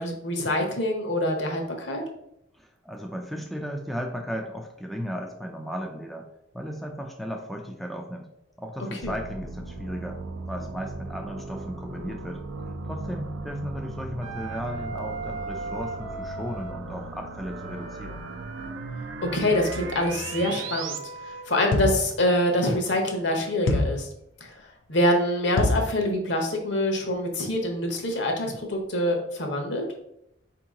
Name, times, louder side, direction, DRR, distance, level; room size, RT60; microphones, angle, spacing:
voice 1, 0.0-2.0 8.9-9.1 19.2-24.1 24.4-24.5 24.9-29.8, left 1 dB, 65° left, 2 dB, 0.9 m, -25 dB
voice 2, 2.5-6.3 6.5-8.3 8.6-10.2 10.5-18.3, equal, ahead, 1 dB, 0.3 m, -35 dB
sound 1, 9.0-21.0, right 3 dB, 85° right, 0.5 m, -37 dB
Wind instrument woodwind instrument, 14.2-16.8 17.4-22.0, right 3 dB, 35° right, 0.6 m, -39 dB
sound 2, 21.7-22.1 23.7-24.1 25.6-25.9, left 2 dB, 85° left, 0.5 m, -24 dB
4.5 x 2.8 x 3.7 m, 0.79 s
head